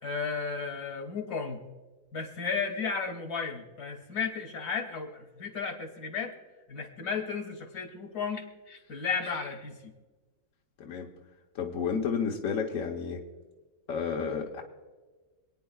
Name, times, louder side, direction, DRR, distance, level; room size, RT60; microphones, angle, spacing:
voice 1, 0.0-1.6 2.1-6.3 6.7-9.9, left 5 dB, 85° left, 4 dB, 2.4 m, -34 dB
voice 2, 10.8-11.1 11.5-13.2 13.9-14.6, left 6 dB, 60° left, 1 dB, 1.4 m, -31 dB
27.0 x 9.6 x 2.3 m, 1.3 s
omnidirectional pair, 1.6 m